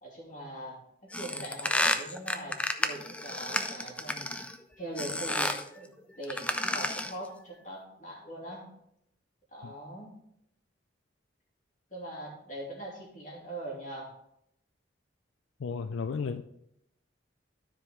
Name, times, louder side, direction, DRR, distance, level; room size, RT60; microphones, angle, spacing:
voice 1, 0.0-8.7 9.5-10.1 11.9-14.1, right 1 dB, 40° left, -3 dB, 2.6 m, -42 dB
sound 1, 1.1-4.6 5.0-5.7 6.2-7.2, left 1 dB, 5° left, 0.4 m, -31 dB
voice 2, 15.6-16.4, left 5 dB, 85° left, 9 dB, 0.4 m, -33 dB
12.5 x 4.9 x 3.6 m, 0.76 s
head